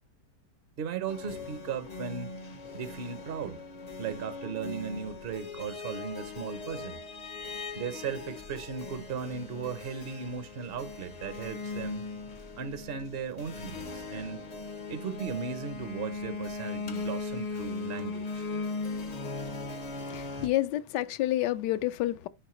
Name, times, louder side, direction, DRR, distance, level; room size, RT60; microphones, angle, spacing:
voice 1, 0.8-2.3 2.7-3.7 4.0-7.0 7.7-12.1 12.6-14.5 14.9-18.5, right 6 dB, 60° right, 0.6 m, -37 dB
sound 1, 1.1-20.5, left 3 dB, 55° left, 0.4 m, -39 dB
voice 2, 20.0-22.3, left 15 dB, 85° left, 1.2 m, -29 dB
10.5 x 4.4 x 3.0 m
omnidirectional pair, 1.8 m